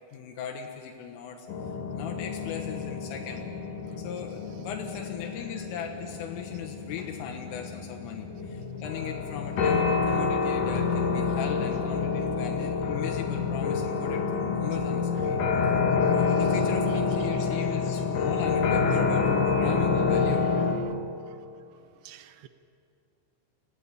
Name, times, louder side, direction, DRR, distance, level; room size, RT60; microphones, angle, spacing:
voice 1, 0.1-1.5 2.0-3.5 4.0-15.4 16.1-20.7, left 7 dB, 80° left, 3 dB, 3.9 m, -38 dB
sound 1, 1.5-20.7, left 5 dB, 50° left, 3.2 m, -27 dB
voice 2, 3.9-4.2 4.5-4.7 15.2-15.5 19.5-19.6 20.1-21.0 21.3-21.4 22.0-22.5, right 11 dB, 80° right, 11 dB, 2.5 m, -47 dB
25.0 x 18.0 x 9.8 m, 2.5 s
omnidirectional pair, 5.8 m